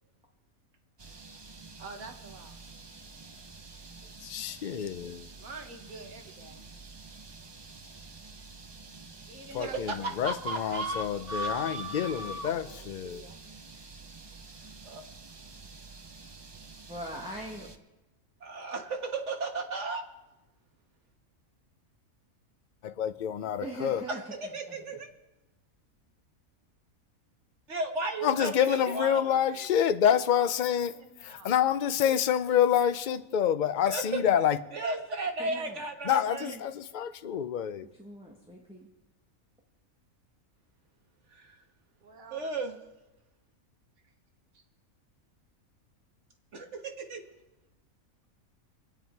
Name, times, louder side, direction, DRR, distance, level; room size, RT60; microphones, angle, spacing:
sound 1, 1.0-17.8, right 4 dB, 30° right, 0.5 m, -49 dB
voice 1, 1.8-2.6 5.4-6.6 9.3-13.4 14.6-14.7 28.4-29.0 29.3-29.4 30.1-31.5 42.0-42.5 44.5-44.6, right 4 dB, 90° right, 5 dB, 1.9 m, -48 dB
voice 2, 4.2-5.3 9.5-13.2 22.8-24.0 28.2-30.9 31.2-34.6 36.0-37.9, left 9 dB, 50° left, 11 dB, 0.6 m, -27 dB
voice 3, 10.2-12.5 14.8-15.0 17.6-17.7 18.4-20.0 24.5-25.1 27.7-29.9 33.9-34.2 34.7-36.6 41.3-41.5 42.3-42.8 46.5-47.2, right 3 dB, 55° right, 3 dB, 1.8 m, -35 dB
voice 4, 16.9-17.7 23.6-24.8 35.4-35.8 36.4-36.6 38.0-38.9, equal, 5° right, -1 dB, 1.4 m, -41 dB
25.5 x 9.1 x 4.6 m, 1.0 s
omnidirectional pair, 1.5 m